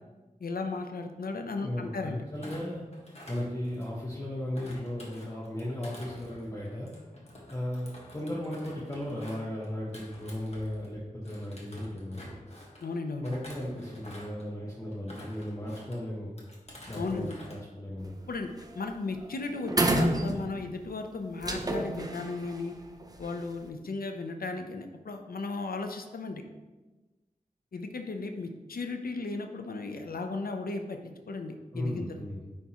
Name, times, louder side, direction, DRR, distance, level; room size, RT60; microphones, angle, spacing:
voice 1, 0.4-2.3 12.8-13.3 17.0-17.3 18.3-22.7 23.2-26.4 27.7-32.3, left 3 dB, 90° left, 5 dB, 0.6 m, -35 dB
voice 2, 1.6-2.9 3.3-6.9 7.5-12.4 13.2-16.3 16.9-18.1 31.7-32.4, left 1 dB, 25° left, -6 dB, 1.1 m, -36 dB
Thump thud, 2.3-4.1 4.5-10.9 11.2-12.8 13.2-14.5 14.9-16.0 16.4-17.6 17.9-18.2, left 1 dB, 45° left, 1.4 m, -49 dB
sound 1, 18.0-18.3 18.6-18.9 19.2-19.3 19.7-20.8 21.4-23.5, right 1 dB, 25° right, 0.6 m, -29 dB
9.6 x 3.5 x 3.0 m, 1.2 s
wide cardioid pair, 70°, 15 cm